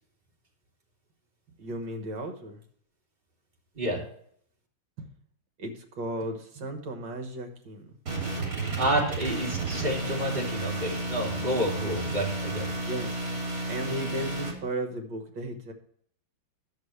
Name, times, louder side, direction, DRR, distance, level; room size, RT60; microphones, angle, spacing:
voice 1, 1.6-2.6 5.0-5.1 5.6-7.9 11.8-12.0 12.9-13.2 13.7-15.7, right 1 dB, 60° right, 4 dB, 1.9 m, -35 dB
sound 1, 8.1-14.5, right 2 dB, 40° right, 3.5 m, -32 dB
voice 2, 8.8-12.7, right 1 dB, 20° right, -2 dB, 2.8 m, -29 dB
11.0 x 7.3 x 3.2 m, 0.63 s
omnidirectional pair, 2.4 m